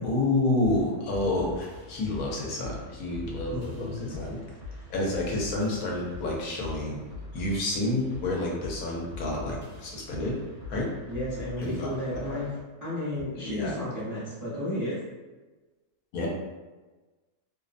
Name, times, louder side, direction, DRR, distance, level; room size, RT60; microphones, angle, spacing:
voice 1, 0.0-4.4 4.9-7.1 7.3-10.4 10.7-10.9 11.6-12.4 13.3-13.7 16.1-16.3, left 2 dB, 80° left, -2 dB, 1.1 m, -29 dB
sound 1, 0.6-12.6, left 2 dB, 60° right, 0.9 m, -43 dB
voice 2, 3.5-4.2 11.1-12.5 12.8-15.0 16.2-16.3, left 1 dB, 20° right, -12 dB, 0.6 m, -33 dB
2.7 x 2.0 x 2.5 m, 1.2 s
omnidirectional pair, 1.5 m